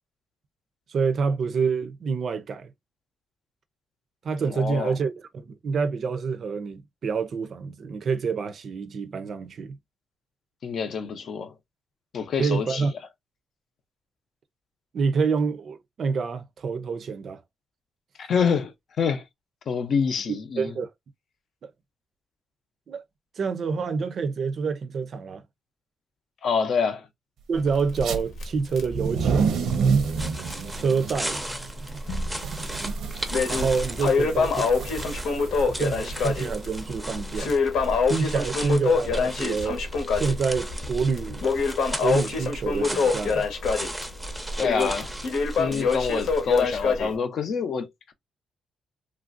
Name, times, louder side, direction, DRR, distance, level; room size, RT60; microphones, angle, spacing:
voice 1, 0.9-2.7 4.2-9.8 12.4-12.9 14.9-17.4 20.3-20.9 21.6-21.7 22.9-23.0 23.4-25.4 27.5-29.6 30.7-31.4 33.5-35.1 35.7-37.5 38.0-39.8 40.1-41.4 42.0-43.5, right 5 dB, 55° right, 0.4 m, -27 dB
voice 2, 4.5-5.0 10.6-11.5 12.1-12.9 18.2-19.2 19.7-20.7 26.4-27.1 44.6-45.1 45.6-48.1, left 6 dB, 60° left, 0.6 m, -27 dB
Crackle, 27.6-30.3 30.5-30.6 31.1-31.2 31.9-32.5 32.9-47.1, left 4 dB, 85° left, 1.0 m, -25 dB
masking tape reversed, 27.9-28.2 28.8-37.3, right 5 dB, 90° right, 0.6 m, -29 dB
sound 1, 29.5-46.7, right 1 dB, 5° right, 0.5 m, -37 dB
3.2 x 2.5 x 2.4 m
cardioid pair, 125°, 0 cm